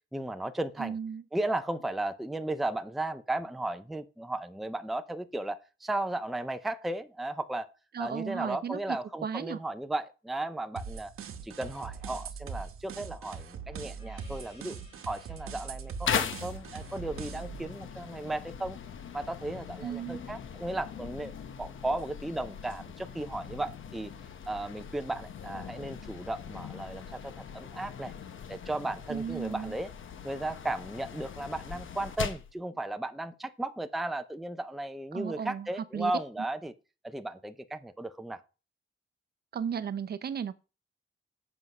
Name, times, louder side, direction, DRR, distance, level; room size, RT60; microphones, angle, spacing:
voice 1, 0.1-1.0 1.3-7.7 8.0-11.1 11.4-14.8 15.1-18.8 19.1-21.3 21.6-24.1 24.5-28.1 28.5-29.9 30.2-36.7 37.0-38.4, right 2 dB, ahead, 0.5 m, -35 dB
voice 2, 0.8-1.2 7.9-9.6 19.8-20.2 29.1-29.7 35.1-35.7 35.9-36.1 39.5-40.6, right 7 dB, 50° right, 0.6 m, -35 dB
sound 1, 10.8-17.6, right 6 dB, 85° right, 1.1 m, -41 dB
Gong, 14.0-19.0, left 2 dB, 30° left, 3.9 m, -60 dB
sound 2, 16.1-32.5, left 7 dB, 70° left, 1.0 m, -40 dB
7.9 x 6.2 x 5.3 m
wide cardioid pair, 180°, 21 cm